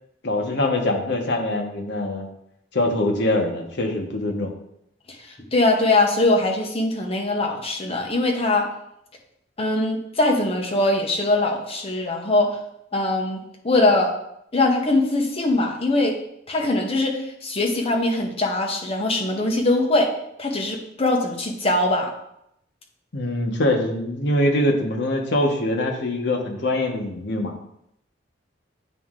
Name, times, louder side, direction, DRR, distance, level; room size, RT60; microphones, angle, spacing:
voice 1, 0.2-2.3 2.7-4.5 23.1-27.5, left 1 dB, 65° left, 3 dB, 1.0 m, -23 dB
voice 2, 5.5-8.7 9.6-12.5 12.9-14.1 14.5-16.1 16.5-20.1 20.4-22.1, left 2 dB, 30° left, 1 dB, 1.0 m, -21 dB
9.1 x 3.1 x 3.7 m, 0.77 s
head